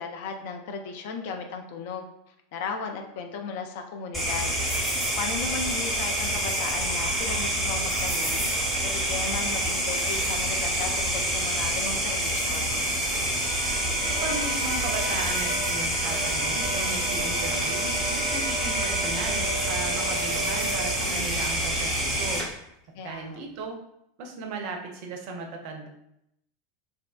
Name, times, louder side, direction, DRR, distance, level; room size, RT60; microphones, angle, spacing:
voice 1, 0.0-2.1 2.5-4.6 5.2-8.4 8.8-12.8 23.0-23.4, left 5 dB, 55° left, 4 dB, 0.3 m, -35 dB
sound 1, 4.1-22.4, right 1 dB, 10° right, 0.8 m, -27 dB
Trumpet, 13.4-19.8, equal, 90° left, 0.8 m, -38 dB
voice 2, 14.1-22.7 23.0-23.8 24.2-25.9, right 3 dB, 50° right, 2 dB, 0.4 m, -36 dB
sound 2, 14.2-22.0 22.3-22.5, right 2 dB, 25° left, 0.8 m, -38 dB
2.6 x 2.1 x 2.3 m, 0.79 s
figure-of-eight pair, 85°, 0 cm